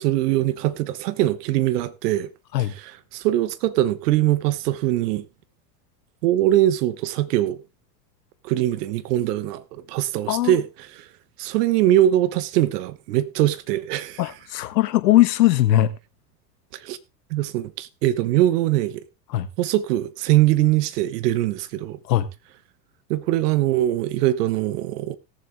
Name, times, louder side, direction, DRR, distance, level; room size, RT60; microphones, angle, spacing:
voice 1, 0.0-2.3 2.8-5.2 6.2-7.6 8.4-10.7 11.0-11.1 11.4-14.2 16.8-17.0 17.3-19.0 19.6-22.0 23.1-25.2, right 14 dB, 70° right, 1.2 m, -22 dB
voice 2, 14.2-15.9 19.3-19.5 22.1-22.3, left 14 dB, 80° left, 1.5 m, -19 dB
17.5 x 7.4 x 3.3 m
hypercardioid pair, 95°, 49 cm